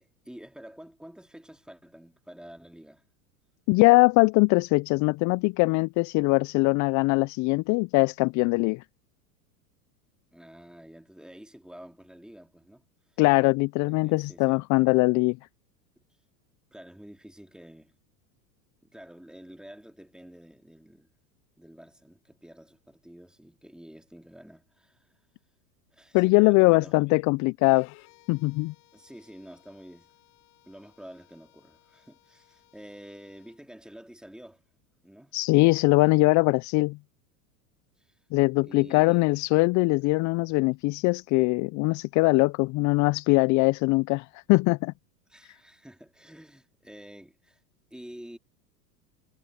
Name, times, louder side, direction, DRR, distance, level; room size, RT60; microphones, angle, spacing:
voice 1, 0.0-3.0 10.3-12.8 13.8-14.6 16.7-17.9 18.8-21.1 21.6-25.1 25.9-27.0 28.9-30.1 30.7-34.6 35.0-35.3 38.0-38.2 38.6-39.3 45.3-47.6 47.9-48.4, equal, ahead, 2.7 m, -48 dB
voice 2, 3.7-8.8 13.2-15.4 26.1-27.9 28.3-28.7 35.3-37.0 38.3-44.9, left 25 dB, 40° left, 0.5 m, -22 dB
Bowed string instrument, 27.6-33.6, left 24 dB, 55° left, 7.8 m, -60 dB
hypercardioid pair, 95°, 48 cm